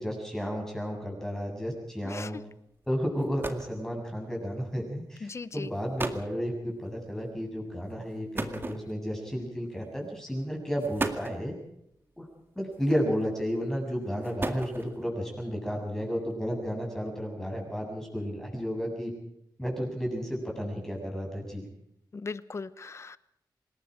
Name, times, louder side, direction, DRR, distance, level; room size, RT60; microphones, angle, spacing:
voice 1, 0.0-2.4 2.9-11.6 12.2-12.3 12.6-19.1 19.6-21.7, equal, 5° left, -1 dB, 7.5 m, -32 dB
sound 1, 2.8-2.9 3.2-3.8 4.8-5.0 5.6-5.7 6.0-6.3 8.3-9.2 10.1-10.3 10.8-11.5 12.7-13.2 14.0-15.1, right 3 dB, 30° right, 2.1 m, -35 dB
voice 2, 5.2-5.7 22.1-23.2, left 4 dB, 35° left, 15 dB, 0.9 m, -38 dB
26.0 x 20.5 x 5.1 m, 0.79 s
wide cardioid pair, 130°, 8 cm